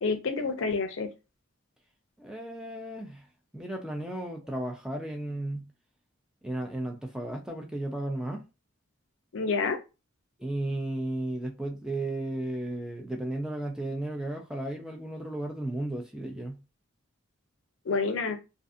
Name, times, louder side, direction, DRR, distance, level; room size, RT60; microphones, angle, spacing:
voice 1, 0.0-1.1 9.3-9.8 17.9-18.4, left 4 dB, 65° left, 0.5 m, -28 dB
voice 2, 2.2-3.3 3.5-5.7 6.4-8.4 10.4-16.6, right 1 dB, 5° right, 0.4 m, -34 dB
2.5 x 2.4 x 2.5 m
head